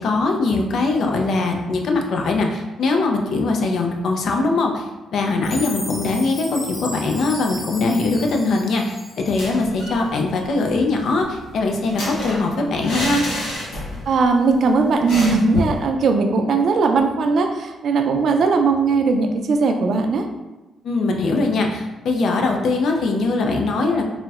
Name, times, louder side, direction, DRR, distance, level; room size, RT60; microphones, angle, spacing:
voice 1, 0.0-4.9 5.1-13.2 20.8-24.1, left 3 dB, 70° left, 2 dB, 0.4 m, -21 dB
Chime, 5.4-9.7, left 1 dB, 50° left, 0.9 m, -35 dB
sound 1, 9.3-10.0 10.3-10.4 10.7-14.2 14.4-14.6 15.1-15.8, left 1 dB, 85° left, 0.9 m, -29 dB
voice 2, 14.1-20.3, right 4 dB, 65° right, 5 dB, 0.3 m, -18 dB
3.9 x 2.1 x 2.3 m, 1.1 s
supercardioid pair, 60°, 0 cm